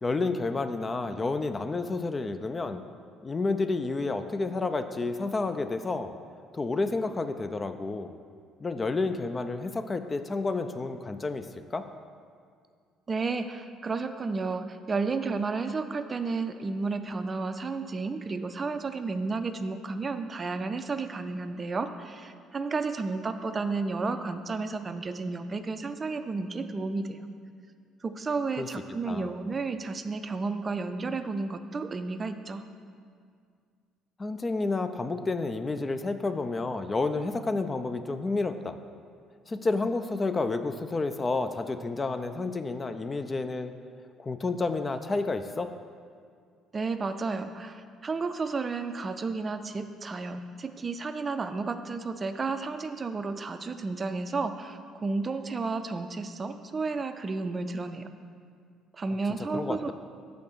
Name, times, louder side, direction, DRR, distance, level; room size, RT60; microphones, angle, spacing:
voice 1, 0.0-2.8 3.2-6.1 6.5-8.1 8.6-11.9 28.6-28.7 29.1-29.3 34.2-38.8 39.5-43.7 44.2-45.7 59.5-59.9, left 3 dB, 30° left, 9 dB, 0.4 m, -30 dB
voice 2, 13.1-27.2 28.0-32.6 46.7-58.1 58.9-59.9, right 4 dB, 35° right, 9 dB, 0.4 m, -32 dB
6.4 x 5.2 x 6.0 m, 2.1 s
hypercardioid pair, 50°, 0 cm